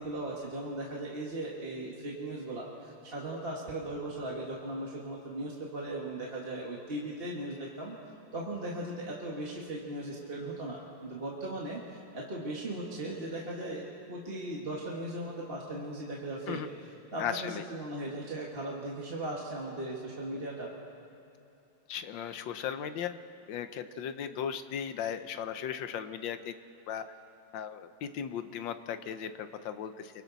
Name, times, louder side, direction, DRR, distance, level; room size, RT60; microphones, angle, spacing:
voice 1, 0.0-20.7, right 1 dB, 30° right, -3 dB, 1.8 m, -38 dB
voice 2, 17.2-17.6 21.9-23.2 23.5-26.5 26.9-27.0 27.5-30.2, left 8 dB, 75° left, 10 dB, 1.5 m, -37 dB
28.5 x 23.5 x 4.1 m, 2.7 s
omnidirectional pair, 2.1 m